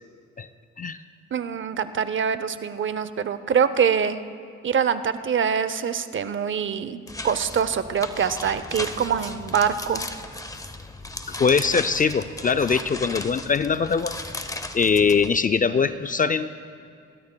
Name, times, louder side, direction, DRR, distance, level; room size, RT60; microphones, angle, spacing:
voice 1, 1.3-4.2 4.6-10.0, right 7 dB, 40° right, 12 dB, 0.7 m, -24 dB
sound 1, 7.1-15.3, left 2 dB, 10° left, 0.7 m, -36 dB
voice 2, 11.3-14.2 14.7-16.5, left 5 dB, 30° left, 11 dB, 0.4 m, -22 dB
29.0 x 13.0 x 2.3 m, 2.4 s
cardioid pair, 90°, 30 cm